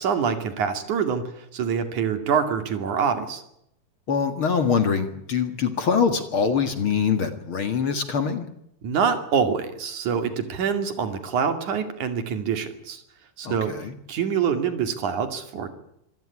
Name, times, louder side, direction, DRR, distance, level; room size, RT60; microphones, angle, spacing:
voice 1, 0.0-3.4 8.8-13.0 13.4-13.7 14.1-15.7, right 7 dB, 70° right, 8 dB, 3.9 m, -25 dB
voice 2, 4.1-8.5 13.4-14.0, left 6 dB, 45° left, 9 dB, 2.4 m, -24 dB
25.5 x 16.5 x 9.7 m, 0.76 s
omnidirectional pair, 3.6 m